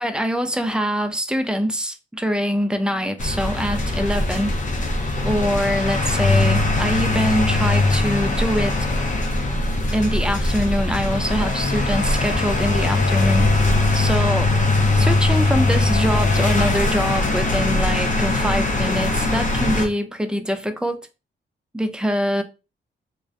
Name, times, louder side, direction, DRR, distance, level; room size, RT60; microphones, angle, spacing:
voice 1, 0.0-4.6 5.2-8.8 9.9-13.5 13.9-14.5 15.0-21.0 21.7-22.4, equal, 5° right, 0.3 m, -24 dB
sound 1, 3.2-19.9, left 2 dB, 40° left, 0.6 m, -20 dB
2.4 x 2.1 x 2.4 m
cardioid pair, 85°, 20 cm